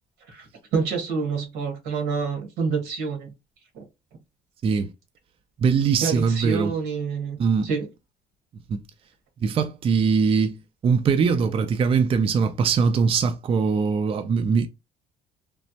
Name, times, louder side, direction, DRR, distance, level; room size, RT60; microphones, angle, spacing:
voice 1, 0.3-3.3 3.7-3.8 6.0-7.4 7.6-7.9, right 5 dB, 90° right, 1.4 m, -27 dB
voice 2, 5.6-6.7 7.4-7.7 8.7-8.8 9.4-14.7, right 5 dB, 35° right, 0.4 m, -22 dB
3.2 x 2.0 x 2.7 m
cardioid pair, 110°, 17 cm